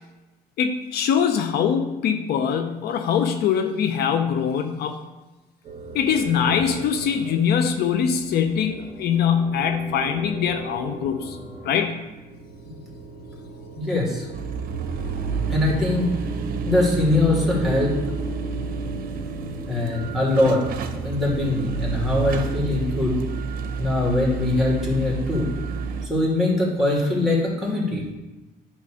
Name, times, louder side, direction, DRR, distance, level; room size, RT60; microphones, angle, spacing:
voice 1, 0.6-5.0 5.9-11.4 11.6-12.0, left 7 dB, 70° left, 7 dB, 0.6 m, -23 dB
sound 1, 5.6-22.9, right 2 dB, 30° right, 2.5 m, -36 dB
voice 2, 13.7-14.3 15.5-16.1 16.7-17.9 19.7-20.6 21.0-23.1 23.8-25.5 26.0-28.0, left 2 dB, ahead, -4 dB, 2.6 m, -22 dB
sound 2, 14.3-26.1, right 5 dB, 60° right, 0.7 m, -30 dB
9.1 x 3.1 x 6.3 m, 1.1 s
cardioid pair, 110°, 17 cm